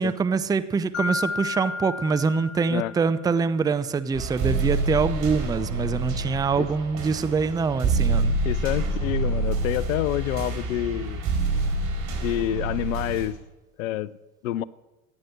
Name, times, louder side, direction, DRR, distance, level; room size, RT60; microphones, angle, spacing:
voice 1, 0.0-8.4, right 5 dB, 10° right, 13 dB, 0.5 m, -24 dB
Mallet percussion, 0.9-3.5, left 4 dB, 35° left, 2.6 m, -33 dB
sound 1, 4.1-13.3, right 3 dB, 45° right, 4.6 m, -27 dB
voice 2, 8.4-11.2 12.2-13.4 13.8-14.2 14.4-14.6, left 14 dB, 65° left, 21 dB, 0.6 m, -27 dB
14.5 x 9.6 x 6.5 m, 1.1 s
figure-of-eight pair, 75°, 43 cm